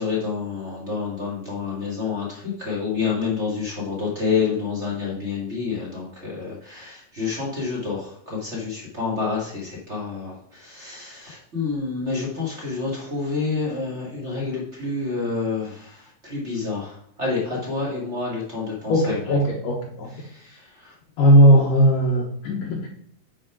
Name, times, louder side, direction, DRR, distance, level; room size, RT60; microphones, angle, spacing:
voice 1, 0.0-19.4 20.2-20.9, left 4 dB, 25° right, -6 dB, 1.5 m, -28 dB
voice 2, 18.9-20.1 21.2-22.9, equal, 70° left, -1 dB, 2.4 m, -17 dB
7.6 x 4.8 x 5.9 m, 0.65 s
omnidirectional pair, 4.3 m